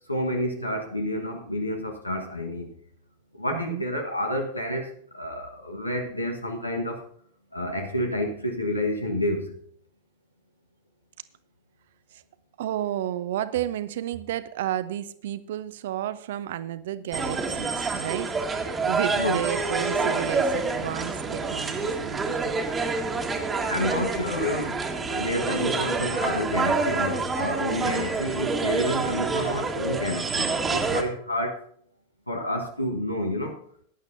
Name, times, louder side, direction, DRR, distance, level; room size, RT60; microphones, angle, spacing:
voice 1, 0.1-2.7 3.4-7.0 7.5-9.5 19.2-19.5 23.7-24.8 25.0-31.6 32.3-33.6, left 1 dB, 85° left, 3 dB, 1.3 m, -29 dB
voice 2, 3.5-3.8 12.6-18.3 18.8-22.5, right 12 dB, 55° right, 15 dB, 0.7 m, -32 dB
sound 1, 17.1-31.0, right 4 dB, 15° right, 1.5 m, -27 dB
17.5 x 10.5 x 2.7 m, 0.63 s
figure-of-eight pair, 90°, 0 cm